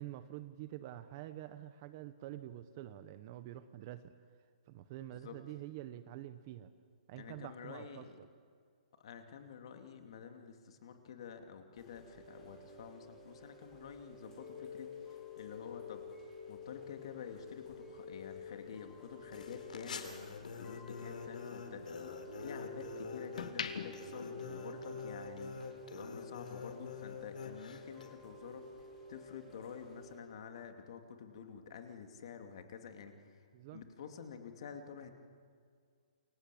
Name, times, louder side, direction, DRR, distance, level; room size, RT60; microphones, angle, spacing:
voice 1, 0.0-4.1 4.7-6.7 7.1-8.1 33.5-33.8, right 13 dB, 25° right, 12 dB, 0.7 m, -47 dB
voice 2, 7.2-8.2 9.0-16.0 16.5-21.8 22.4-25.6 25.9-28.6 29.1-33.4 33.7-35.1, left 7 dB, 40° left, 5 dB, 2.6 m, -49 dB
Chime / Rain, 11.8-30.2, left 3 dB, 10° left, 4.3 m, -50 dB
sound 1, 18.5-20.9 21.3-22.7 23.1-25.3 25.6-25.8, left 6 dB, 60° left, 2.0 m, -46 dB
sound 2, 19.3-28.1, left 5 dB, 75° left, 3.6 m, -47 dB
28.5 x 23.5 x 8.5 m, 2.1 s
hypercardioid pair, 175°, 4 cm